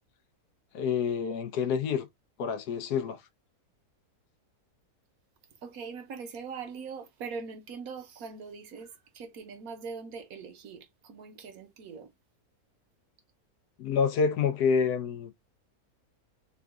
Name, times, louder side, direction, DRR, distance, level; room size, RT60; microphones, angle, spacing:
voice 1, 0.7-2.1 2.4-3.2 13.8-15.3, left 6 dB, 90° left, 1.3 m, -27 dB
voice 2, 5.6-12.1, right 5 dB, 70° right, 1.3 m, -42 dB
3.8 x 2.4 x 3.5 m
omnidirectional pair, 1.6 m